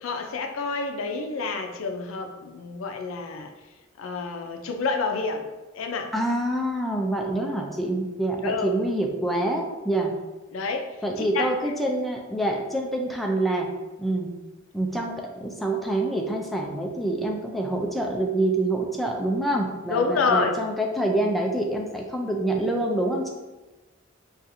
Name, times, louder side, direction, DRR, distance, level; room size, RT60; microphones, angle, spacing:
voice 1, 0.0-3.5 4.0-5.5 5.7-6.1 7.4-7.5 8.4-8.7 10.5-10.9 11.2-11.5 19.9-20.5, left 4 dB, 85° left, 4 dB, 0.4 m, -28 dB
voice 2, 6.1-10.1 11.0-13.7 14.0-14.3 14.7-23.3, right 1 dB, ahead, 0 dB, 0.3 m, -26 dB
4.0 x 2.4 x 2.6 m, 1.1 s
head